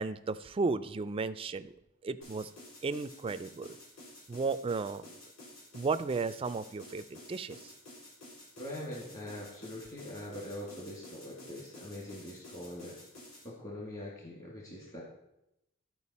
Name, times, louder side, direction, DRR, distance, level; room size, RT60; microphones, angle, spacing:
voice 1, 0.0-1.7 2.0-2.5 2.8-3.8 4.3-5.0 5.7-7.7, right 4 dB, 25° right, 13 dB, 0.3 m, -34 dB
sound 1, 2.2-13.5, left 1 dB, 70° left, 3.6 m, -52 dB
voice 2, 8.6-12.9 13.4-15.0, left 1 dB, 35° left, -3 dB, 1.9 m, -43 dB
13.0 x 4.6 x 4.2 m, 0.86 s
head